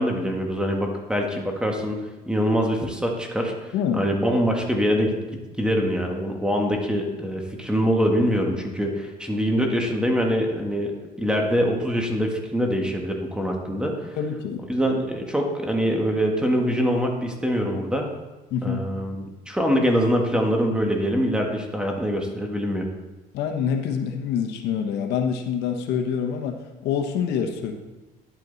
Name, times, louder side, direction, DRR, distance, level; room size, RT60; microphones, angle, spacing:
voice 1, 0.0-2.0 2.3-5.2 5.6-14.1 14.7-18.1 18.6-22.9, equal, 5° right, 1 dB, 1.8 m, -24 dB
voice 2, 3.7-4.0 14.2-14.6 18.5-18.8 23.3-26.6 26.8-27.7, left 7 dB, 85° left, 4 dB, 1.2 m, -26 dB
10.5 x 8.9 x 4.1 m, 1.2 s
cardioid pair, 110°, 17 cm